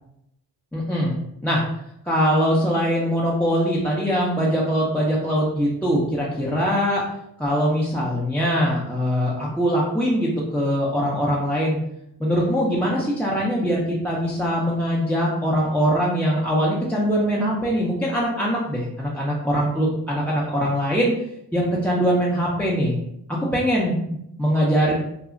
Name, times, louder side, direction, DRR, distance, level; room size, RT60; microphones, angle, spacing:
voice 1, 0.7-1.6 2.0-7.0 7.4-11.8 12.2-21.1 21.5-22.9 23.3-24.9, equal, 5° left, -6 dB, 0.5 m, -22 dB
2.4 x 2.0 x 3.6 m, 0.79 s
cardioid pair, 75°, 40 cm